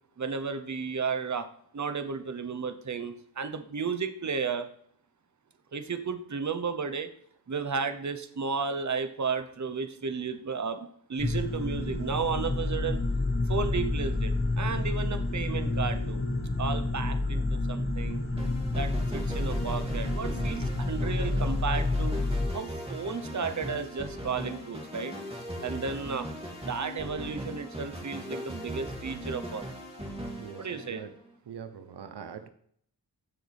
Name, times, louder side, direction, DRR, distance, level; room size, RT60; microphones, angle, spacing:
voice 1, 0.2-1.5 1.7-4.7 5.7-7.1 7.5-13.0 13.5-16.2 16.6-18.2 18.7-22.2 22.5-25.2 25.6-26.3 26.6-29.7 30.6-31.0, right 5 dB, 45° right, 9 dB, 1.0 m, -33 dB
sound 1, 11.2-22.5, left 2 dB, 35° left, 1.9 m, -29 dB
sound 2, 18.4-31.3, equal, 15° right, 2.6 m, -39 dB
voice 2, 30.4-31.1 31.5-32.5, right 7 dB, 85° right, 10 dB, 0.9 m, -42 dB
15.5 x 6.5 x 3.5 m, 0.63 s
wide cardioid pair, 75°, 39 cm